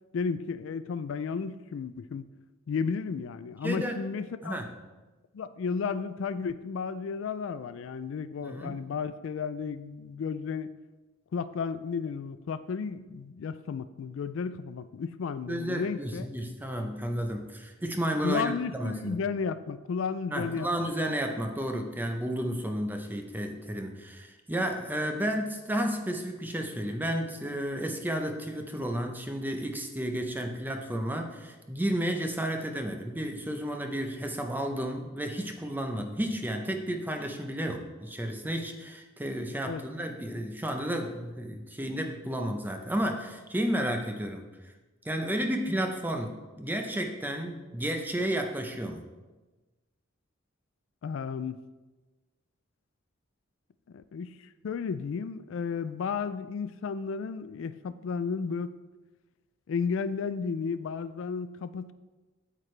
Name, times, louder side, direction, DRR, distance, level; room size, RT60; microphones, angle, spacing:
voice 1, 0.1-2.2 2.7-4.6 5.3-10.7 11.3-16.3 18.2-20.7 39.7-39.8 51.0-51.6 53.9-54.4 54.6-58.7 59.7-61.9, left 5 dB, 65° left, 13 dB, 0.3 m, -33 dB
voice 2, 3.6-4.0 4.4-4.7 8.4-8.8 15.5-19.2 20.3-44.4 45.0-49.0, equal, 10° right, 4 dB, 0.7 m, -32 dB
8.6 x 8.3 x 3.3 m, 1.2 s
head